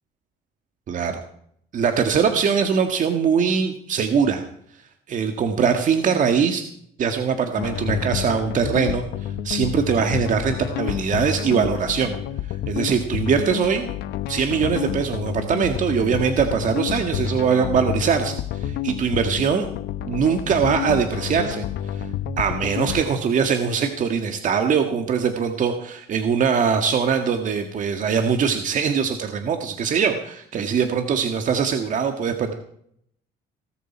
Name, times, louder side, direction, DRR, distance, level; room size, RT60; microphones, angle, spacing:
voice 1, 0.9-1.2 1.7-4.4 5.1-6.6 7.0-12.1 12.7-13.9 14.3-19.7 20.1-21.6 21.9-22.1 22.4-32.5, right 6 dB, 50° right, 6 dB, 1.7 m, -22 dB
sound 1, 7.6-23.0, left 10 dB, 80° left, 1.1 m, -29 dB
19.0 x 13.5 x 4.5 m, 0.67 s
cardioid pair, 110°, 17 cm